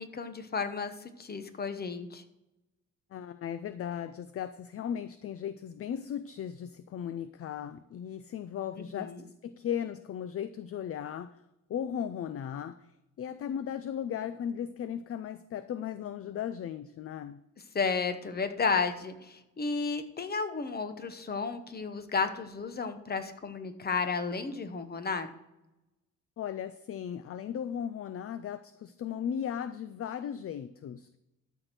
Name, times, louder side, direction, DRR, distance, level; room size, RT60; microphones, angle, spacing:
voice 1, 0.0-2.2 8.8-9.2 17.7-25.3, left 5 dB, 30° left, 9 dB, 0.9 m, -33 dB
voice 2, 3.1-11.4 11.7-12.9 13.2-17.4 26.4-31.2, left 9 dB, 45° left, 13 dB, 0.4 m, -37 dB
12.5 x 4.5 x 6.7 m, 0.93 s
cardioid pair, 130°, 34 cm